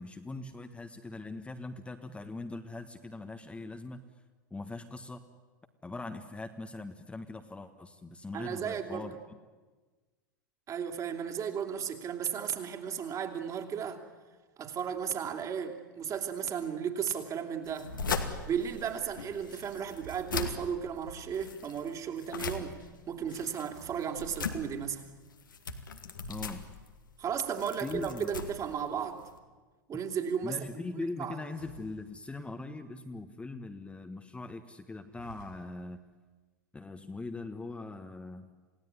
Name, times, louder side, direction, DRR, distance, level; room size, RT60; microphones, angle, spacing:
voice 1, 0.0-4.0 4.5-5.2 5.8-9.1 26.3-26.7 27.8-28.3 30.4-36.0 36.7-38.5, left 3 dB, 10° left, 6 dB, 1.5 m, -41 dB
voice 2, 8.3-9.1 10.7-14.0 14.6-17.9 18.4-22.8 23.1-25.0 27.2-29.3 29.9-30.9 31.2-31.4, right 7 dB, 30° right, 5 dB, 3.1 m, -35 dB
sound 1, 17.6-29.4, left 5 dB, 80° left, 2.4 m, -40 dB
sound 2, 19.9-20.8 23.5-24.8 27.7-28.9 31.4-32.7 35.0-36.0, right 8 dB, 65° right, 7.8 m, -54 dB
28.5 x 17.0 x 9.8 m, 1.3 s
hypercardioid pair, 95°, 11 cm